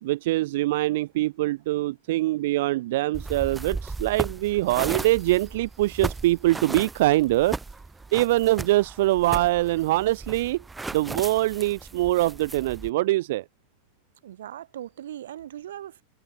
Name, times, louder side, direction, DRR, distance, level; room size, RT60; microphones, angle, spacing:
voice 1, 0.0-7.6 8.1-10.6 10.9-13.4, right 17 dB, 65° right, 0.6 m, -23 dB
sound 1, 3.1-12.9, right 3 dB, 10° right, 0.7 m, -36 dB
voice 2, 14.2-16.0, right 11 dB, 90° right, 1.6 m, -39 dB
supercardioid pair, 145°, 0 cm